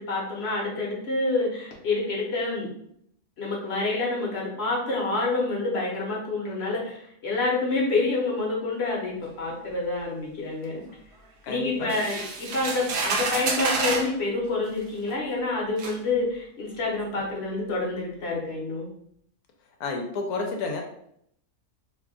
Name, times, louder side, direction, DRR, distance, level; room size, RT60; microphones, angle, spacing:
voice 1, 0.0-2.7 3.4-10.8 11.5-18.9, left 3 dB, 50° left, -2 dB, 1.0 m, -28 dB
voice 2, 11.4-12.1 19.8-20.8, left 3 dB, 75° left, 2 dB, 1.0 m, -31 dB
sound 1, 11.9-14.1 15.1-15.2 15.8-16.0, right 4 dB, 65° right, 0.6 m, -28 dB
2.7 x 2.4 x 3.5 m, 0.70 s
omnidirectional pair, 1.6 m